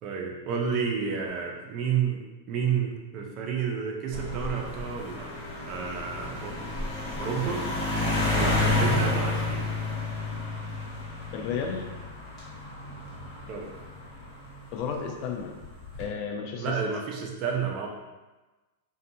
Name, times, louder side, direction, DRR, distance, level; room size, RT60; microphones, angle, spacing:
voice 1, 0.0-5.3 5.7-6.5 7.2-7.6 8.3-9.7 13.5-13.7 16.6-17.9, right 6 dB, 40° right, 0 dB, 0.5 m, -30 dB
sound 1, 4.1-14.8 15.6-16.0, left 2 dB, 25° left, 1.2 m, -30 dB
voice 2, 11.3-11.9 14.7-15.5 16.0-16.7, left 6 dB, 45° left, 2 dB, 0.4 m, -32 dB
2.6 x 2.2 x 2.7 m, 1.2 s
hypercardioid pair, 135°, 0 cm